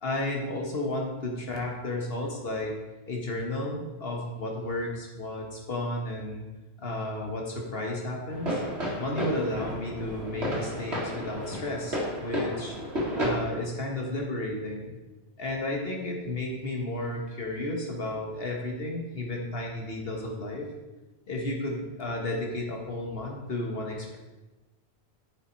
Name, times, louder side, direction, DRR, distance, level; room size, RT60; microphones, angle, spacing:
voice 1, 0.0-2.7 3.1-6.4 6.8-8.6 9.0-12.8 13.2-14.9 15.4-20.7 21.3-24.2, left 1 dB, 65° left, 0 dB, 1.9 m, -33 dB
sound 1, 8.3-13.3, equal, 75° right, 2.2 m, -32 dB
8.3 x 7.3 x 4.7 m, 1.1 s
omnidirectional pair, 1.1 m